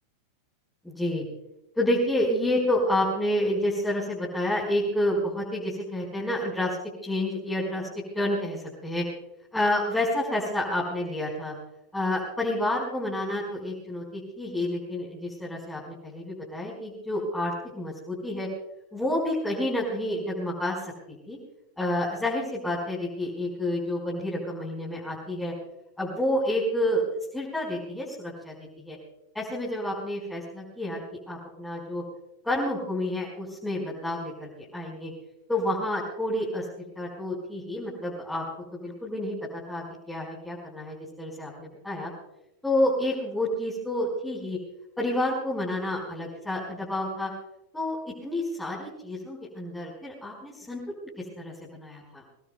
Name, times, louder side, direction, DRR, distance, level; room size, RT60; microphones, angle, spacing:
voice 1, 0.8-1.2 1.8-6.8 7.0-9.0 9.5-11.5 11.9-18.5 18.9-20.9 21.3-21.4 21.8-25.5 26.0-29.0 29.3-32.0 32.4-35.1 35.5-36.6 36.9-38.4 38.7-42.1 42.6-44.6 45.0-47.3 47.7-50.8 51.2-52.2, left 1 dB, 5° left, -5 dB, 4.8 m, -29 dB
26.0 x 19.0 x 2.3 m, 0.90 s
figure-of-eight pair, 90°, 0 cm